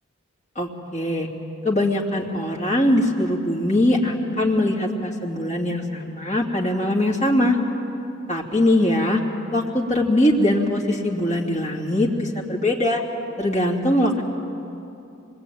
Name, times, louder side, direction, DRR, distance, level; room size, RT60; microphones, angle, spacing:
voice 1, 0.5-1.3 1.6-7.6 8.3-9.2 9.5-13.0 13.4-14.2, left 1 dB, 30° left, -2 dB, 2.8 m, -21 dB
25.5 x 21.5 x 9.4 m, 2.7 s
head